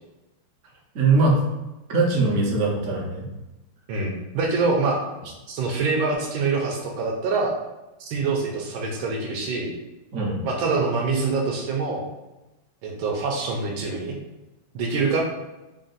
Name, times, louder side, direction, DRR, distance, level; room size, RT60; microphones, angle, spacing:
voice 1, 0.9-1.4 1.9-3.2 10.1-10.5, right 3 dB, 60° right, -2 dB, 0.9 m, -21 dB
voice 2, 3.9-5.0 5.5-7.6 8.0-9.7 10.4-12.0 12.8-14.2 14.7-15.2, right 4 dB, 75° right, 0 dB, 1.4 m, -25 dB
3.7 x 2.5 x 3.9 m, 1.0 s
omnidirectional pair, 2.3 m